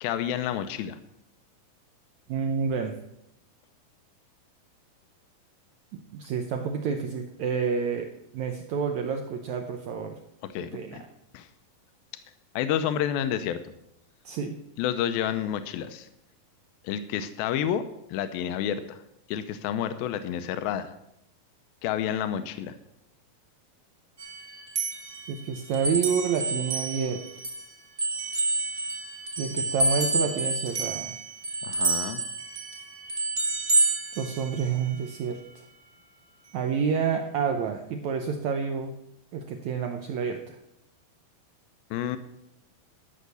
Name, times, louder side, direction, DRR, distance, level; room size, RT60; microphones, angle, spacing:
voice 1, 0.0-1.0 10.5-11.0 11.3-11.5 12.6-13.7 14.8-16.1 16.8-17.8 18.1-19.0 19.3-20.9 21.8-22.8 31.6-32.2 41.9-42.2, left 10 dB, 90° left, 10 dB, 2.5 m, -29 dB
voice 2, 2.3-2.9 5.9-8.1 8.3-10.2 10.6-11.0 14.2-14.6 25.3-27.2 29.4-31.2 34.2-35.4 36.5-38.9 39.3-40.6, right 6 dB, 75° right, 5 dB, 1.7 m, -29 dB
sound 1, 24.2-27.6 28.0-34.9, right 3 dB, 50° right, 0.9 m, -29 dB
12.5 x 6.4 x 6.8 m, 0.83 s
omnidirectional pair, 4.1 m